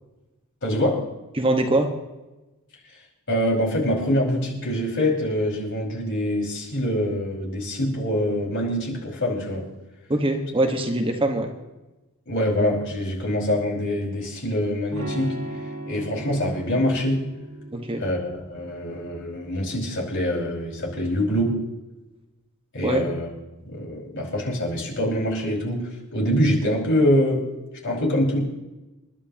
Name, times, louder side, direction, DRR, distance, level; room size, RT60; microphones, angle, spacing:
voice 1, 0.6-1.1 3.3-9.7 12.3-15.4 15.9-17.3 18.0-21.7 22.7-23.3 23.7-27.5 27.8-28.4, left 1 dB, 55° left, -2 dB, 5.2 m, -24 dB
voice 2, 1.3-1.9 10.1-11.5 17.7-18.0 22.8-23.0, right 1 dB, 25° right, 3 dB, 1.3 m, -23 dB
Electric guitar / Strum, 14.9-20.6, right 1 dB, 85° right, 2.3 m, -38 dB
29.0 x 11.5 x 2.9 m, 1.1 s
head